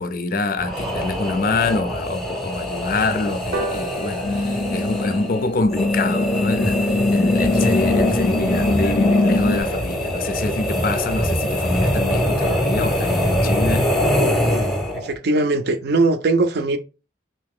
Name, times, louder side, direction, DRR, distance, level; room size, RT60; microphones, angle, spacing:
voice 1, 0.0-13.9, left 3 dB, 50° left, 0.4 m, -25 dB
sound 1, 0.6-15.2, equal, ahead, 0.7 m, -23 dB
sound 2, 3.5-10.3 10.7-10.8 11.1-11.2 11.5-11.6 11.9-12.0 12.3-12.5 13.0-13.1, right 2 dB, 90° right, 0.8 m, -37 dB
sound 3, 4.2-9.6, left 2 dB, 90° left, 0.6 m, -21 dB
voice 2, 15.0-16.8, right 2 dB, 55° right, 0.5 m, -20 dB
3.0 x 2.8 x 3.6 m
head